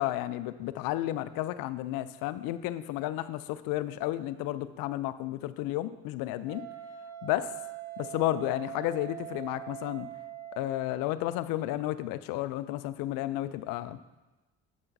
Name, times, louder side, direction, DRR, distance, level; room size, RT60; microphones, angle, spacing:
voice 1, 0.0-6.7 7.2-7.5 8.0-10.1 10.6-14.0, left 15 dB, 70° left, 14 dB, 0.5 m, -32 dB
Wind instrument woodwind instrument, 6.4-11.1, right 12 dB, 10° right, 1.1 m, -43 dB
9.9 x 7.3 x 2.7 m, 1.1 s
hypercardioid pair, 60°, 36 cm